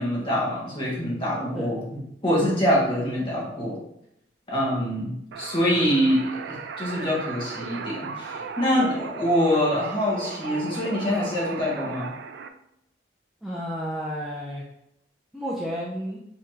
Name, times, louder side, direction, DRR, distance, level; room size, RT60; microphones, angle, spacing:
voice 1, 0.0-1.8 2.2-3.8 4.5-12.1, equal, 30° left, -5 dB, 1.3 m, -25 dB
sound 1, 5.3-12.5, right 5 dB, 70° right, 0.3 m, -36 dB
voice 2, 13.4-14.6 15.3-16.2, equal, ahead, -5 dB, 0.4 m, -31 dB
4.2 x 2.8 x 3.1 m, 0.78 s
head